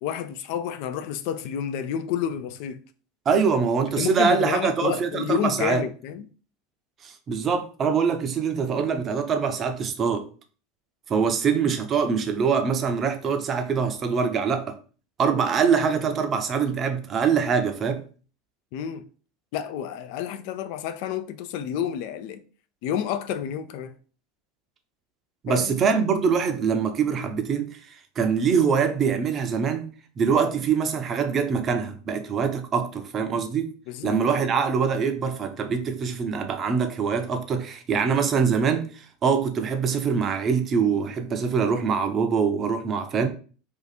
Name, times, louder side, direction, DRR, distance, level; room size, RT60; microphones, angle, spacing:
voice 1, 0.0-2.8 3.9-6.3 18.7-19.1 19.5-22.4 22.8-24.0 25.5-25.8 33.9-34.5, left 9 dB, 60° left, 0.4 m, -30 dB
voice 2, 3.3-5.8 7.0-10.3 11.1-14.7 15.2-18.0 25.4-33.7 34.0-43.3, right 6 dB, 35° right, 0.6 m, -24 dB
2.8 x 2.4 x 4.0 m
hypercardioid pair, 85°, 0 cm